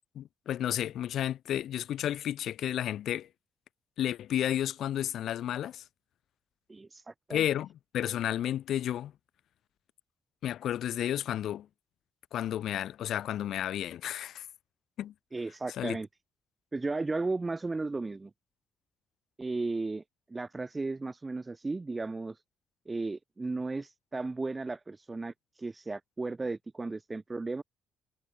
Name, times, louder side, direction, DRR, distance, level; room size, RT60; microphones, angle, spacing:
voice 1, 0.1-3.3 4.0-5.8 7.3-9.1 10.4-11.7 12.3-14.5 15.0-15.1 15.7-16.0, left 11 dB, 75° left, 0.9 m, -32 dB
voice 2, 6.7-7.4 15.3-16.1 16.7-18.3 19.4-20.0 20.3-22.4 22.8-27.6, right 3 dB, 20° right, 3.4 m, -35 dB
cardioid pair, 90°, 0 cm